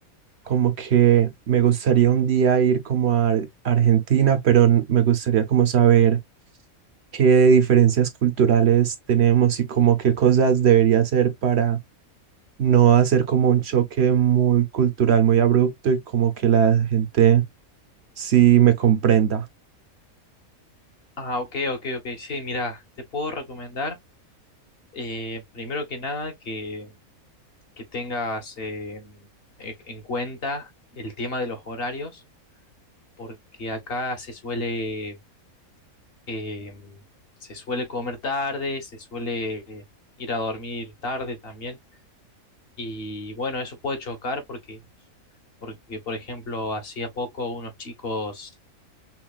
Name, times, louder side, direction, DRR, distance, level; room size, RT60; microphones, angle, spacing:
voice 1, 0.5-6.2 7.1-11.8 12.6-17.4 18.2-19.4, right 9 dB, 60° right, 0.8 m, -18 dB
voice 2, 21.2-22.8 23.1-24.0 24.9-26.9 27.8-29.3 29.6-32.2 33.2-35.2 36.3-37.0 37.4-39.8 40.2-41.8 42.8-44.8 45.6-48.5, left 2 dB, 45° left, 1.3 m, -31 dB
5.7 x 2.3 x 2.3 m
omnidirectional pair, 1.5 m